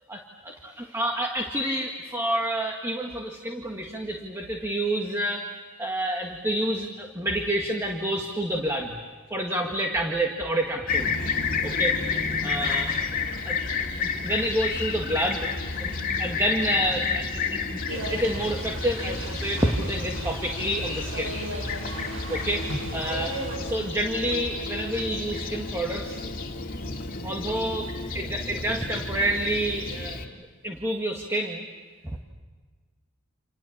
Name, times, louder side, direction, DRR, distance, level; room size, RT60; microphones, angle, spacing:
voice 1, 0.1-5.5 5.8-9.0 9.3-11.2 11.6-12.0 12.4-12.9 13.4-13.6 14.0-15.5 15.8-15.9 16.2-21.4 22.3-26.2 27.2-27.9 28.1-30.2 30.6-31.7 32.0-32.2, right 1 dB, 15° right, 2 dB, 1.8 m, -28 dB
Fixed-wing aircraft airplane, 10.9-30.2, left 4 dB, 40° left, 2.5 m, -31 dB
sound 1, 17.9-23.6, right 1 dB, 65° right, 7.8 m, -36 dB
29.5 x 27.5 x 7.3 m, 1.4 s
head